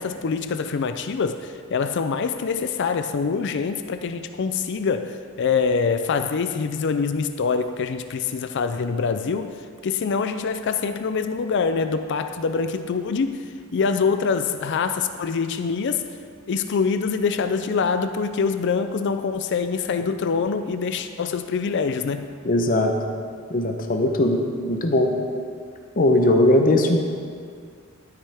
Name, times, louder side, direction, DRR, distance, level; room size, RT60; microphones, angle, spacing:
voice 1, 0.0-9.5 9.8-13.4 13.7-16.0 16.5-22.3, left 5 dB, 55° left, 9 dB, 0.4 m, -25 dB
voice 2, 22.4-22.9 23.5-24.4 24.7-25.1 26.0-27.0, left 1 dB, 40° left, 3 dB, 0.8 m, -19 dB
12.0 x 9.9 x 3.5 m, 2.1 s
head